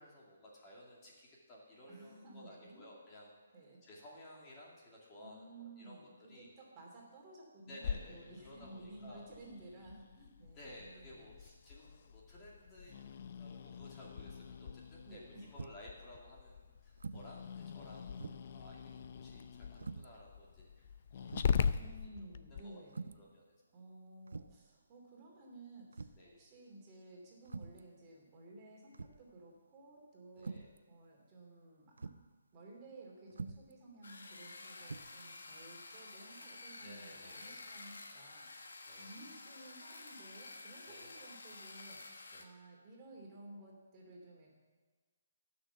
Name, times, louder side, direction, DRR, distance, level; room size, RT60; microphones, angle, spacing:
voice 1, 0.0-3.4 3.8-6.0 6.3-6.5 7.7-9.3 10.5-22.1 22.5-22.8 23.1-23.4 26.2-26.4 30.3-30.7 36.8-37.7 38.9-39.1 40.9-41.1 42.3-42.5, left 1 dB, 20° left, -4 dB, 2.4 m, -56 dB
voice 2, 1.9-2.8 3.5-3.8 5.2-11.3 15.0-15.5 21.7-23.2 23.7-32.1 32.5-44.5, right 2 dB, 25° right, -2 dB, 2.7 m, -55 dB
Growling, 7.8-22.6, left 7 dB, 45° left, 0.5 m, -42 dB
sound 1, 15.6-15.9 17.0-17.3 17.7-17.8 18.2-18.6 19.8-20.1 20.8-20.9 21.3-21.6 22.9-23.3 24.3-24.7 25.9-26.3 27.4-27.9 28.9-29.3 30.4-30.8 32.0-32.3 33.3-33.7 34.8-35.0, right 4 dB, 85° right, 0.5 m, -45 dB
sound 2, 34.0-42.4, left 3 dB, 80° left, 1.4 m, -51 dB
14.5 x 6.4 x 7.1 m, 1.3 s
hypercardioid pair, 160°, 0 cm